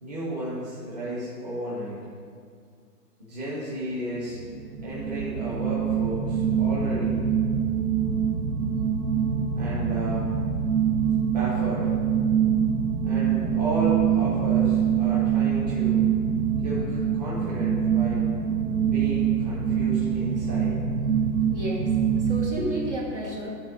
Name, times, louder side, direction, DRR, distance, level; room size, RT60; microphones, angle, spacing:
voice 1, 0.0-2.0 3.2-4.4 4.8-7.2 9.5-10.4 11.2-11.9 13.0-16.0 16.6-18.3 18.8-20.8, right 1 dB, 25° right, -7 dB, 1.4 m, -33 dB
sound 1, 4.3-22.5, right 8 dB, 75° right, 1.2 m, -24 dB
voice 2, 21.5-23.5, equal, 45° right, -3 dB, 1.5 m, -32 dB
12.0 x 4.2 x 5.4 m, 2.1 s
hypercardioid pair, 175°, 48 cm